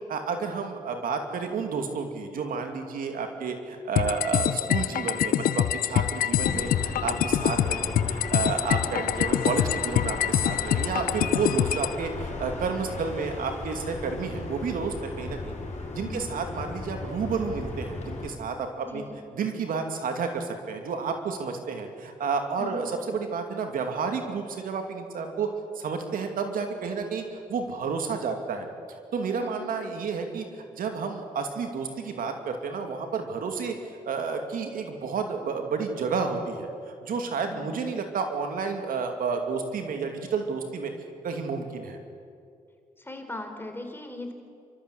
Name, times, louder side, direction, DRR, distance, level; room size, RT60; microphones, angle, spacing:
voice 1, 0.1-15.5 15.9-19.0 19.3-25.5 25.7-27.2 27.5-28.7 29.1-30.4 30.8-33.7 34.1-36.7 37.0-40.9 41.2-42.0, right 5 dB, 75° right, 5 dB, 2.6 m, -31 dB
sound 1, 4.0-11.9, left 11 dB, 80° left, 0.6 m, -25 dB
sound 2, 6.3-18.3, left 3 dB, 55° left, 5.6 m, -36 dB
voice 2, 15.9-16.3 18.8-19.1 22.6-22.8 29.3-29.7 37.5-37.8 43.0-44.3, left 2 dB, 15° left, 5 dB, 3.8 m, -39 dB
28.5 x 14.0 x 8.2 m, 2.4 s
cardioid pair, 70°, 15 cm